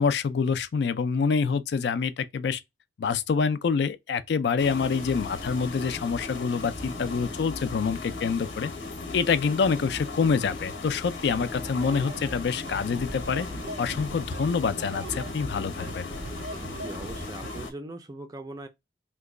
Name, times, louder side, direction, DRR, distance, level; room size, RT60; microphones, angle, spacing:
voice 1, 0.0-2.6 3.0-8.7 9.1-13.5 13.8-16.1, left 5 dB, 60° left, 0.3 m, -26 dB
sound 1, 4.6-17.7, left 3 dB, 80° left, 0.9 m, -37 dB
sound 2, 11.6-17.6, right 2 dB, 85° right, 0.5 m, -41 dB
voice 2, 16.8-18.7, right 2 dB, 20° right, 0.3 m, -40 dB
2.9 x 2.2 x 3.6 m
head